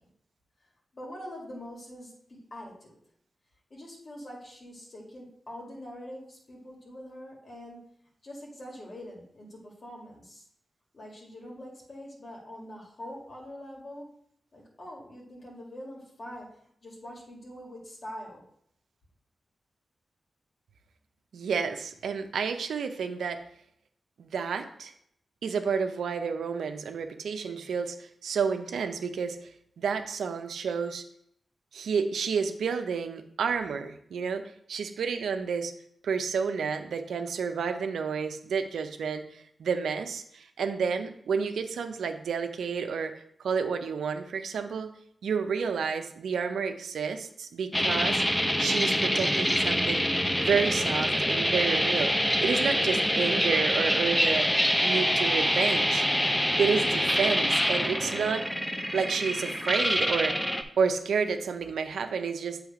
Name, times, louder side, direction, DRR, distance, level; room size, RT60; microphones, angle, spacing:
voice 1, 0.9-3.0 3.7-7.8 8.2-10.5 10.9-14.1 14.5-18.4, equal, 55° left, -2 dB, 2.0 m, -44 dB
voice 2, 21.3-23.4 24.2-24.9 25.4-29.4 29.8-31.0 31.7-34.4 34.7-35.7 36.0-43.1 43.4-44.9 45.2-48.2 48.6-50.1 50.4-52.2 52.4-54.5 54.8-56.0 56.6-58.5 58.9-62.6, right 6 dB, 90° right, 7 dB, 0.5 m, -30 dB
sound 1, 47.7-60.6, equal, 10° left, 0.7 m, -26 dB
7.1 x 3.2 x 4.9 m, 0.70 s
cardioid pair, 50°, 0 cm